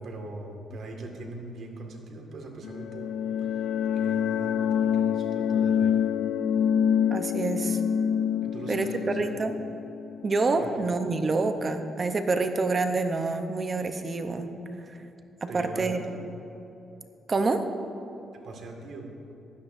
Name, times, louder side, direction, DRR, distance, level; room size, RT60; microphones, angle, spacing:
voice 1, 0.0-3.1 3.4-6.0 8.4-9.3 10.6-10.9 15.5-16.2 18.4-19.1, right 2 dB, 60° right, 2 dB, 1.9 m, -41 dB
sound 1, 2.6-11.2, left 8 dB, 80° left, 0.4 m, -27 dB
voice 2, 7.1-7.8 8.7-8.9 9.2-9.6 10.2-14.5 14.9-15.0 15.4-16.0 17.3-17.6, right 3 dB, 35° right, 7 dB, 0.8 m, -27 dB
16.0 x 12.0 x 2.6 m, 2.9 s
cardioid pair, 90°, 0 cm